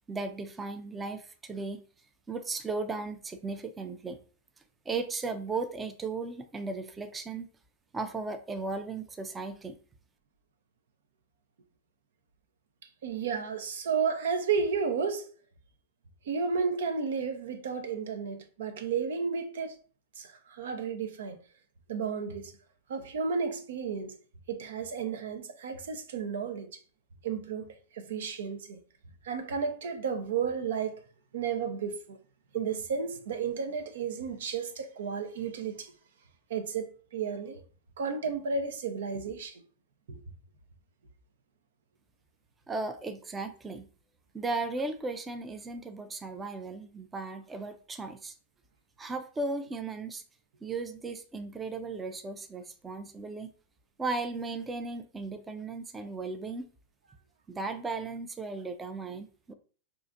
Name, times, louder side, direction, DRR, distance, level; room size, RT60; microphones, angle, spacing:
voice 1, 0.1-1.8 2.3-4.2 4.9-7.5 7.9-9.8 42.7-43.9 44.3-48.3 49.0-50.2 50.6-53.5 54.0-56.7 57.5-59.5, right 3 dB, 15° right, 0.4 m, -36 dB
voice 2, 13.0-15.3 16.2-19.8 20.1-21.4 21.9-22.5 22.9-24.1 24.5-26.8 27.2-28.8 29.2-31.0 31.3-32.2 32.5-35.9 36.5-37.6 38.0-39.6 40.1-40.2, right 5 dB, 80° right, 0.6 m, -32 dB
4.6 x 2.5 x 2.5 m
hypercardioid pair, 125°, 0 cm